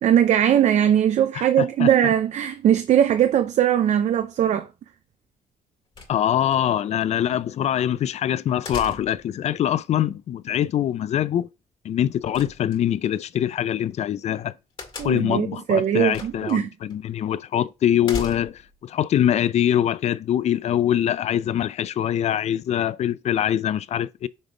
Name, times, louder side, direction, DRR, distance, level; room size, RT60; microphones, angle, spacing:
voice 1, 0.0-4.7 15.0-16.7, right 10 dB, 60° right, 0.5 m, -20 dB
voice 2, 1.3-1.9 6.1-11.5 11.8-14.5 15.0-24.3, left 10 dB, 55° left, 0.5 m, -23 dB
frontdoor open closing, 5.9-6.6 8.6-9.3 12.3-13.1 14.8-15.4 16.1-16.5 16.9-17.0 18.0-18.7, left 3 dB, 40° left, 2.1 m, -36 dB
6.2 x 3.6 x 5.1 m
cardioid pair, 105°, 13 cm